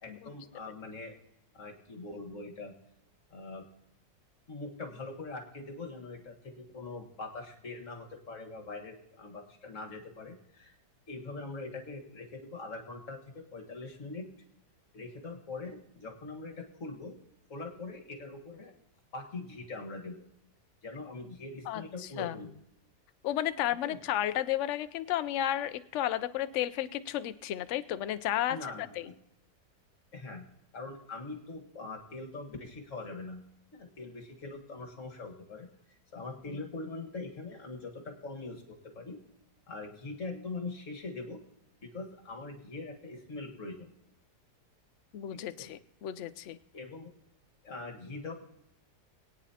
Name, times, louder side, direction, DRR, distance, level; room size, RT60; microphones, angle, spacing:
voice 1, 0.0-1.2 1.5-2.7 3.3-3.6 4.5-10.7 11.1-14.3 14.9-17.2 17.5-18.7 19.1-20.2 20.8-22.5 23.8-24.0 28.5-29.1 30.1-30.5 30.7-33.4 33.7-35.7 36.1-39.2 39.7-41.4 41.8-43.9 45.3-45.7 46.7-47.1 47.6-48.3, left 3 dB, 50° left, 2 dB, 1.9 m, -42 dB
voice 2, 21.7-22.4 23.2-28.6 29.0-29.1 36.5-36.6 45.1-46.6, left 12 dB, 70° left, 13 dB, 0.7 m, -33 dB
22.5 x 9.3 x 2.8 m, 0.82 s
omnidirectional pair, 1.8 m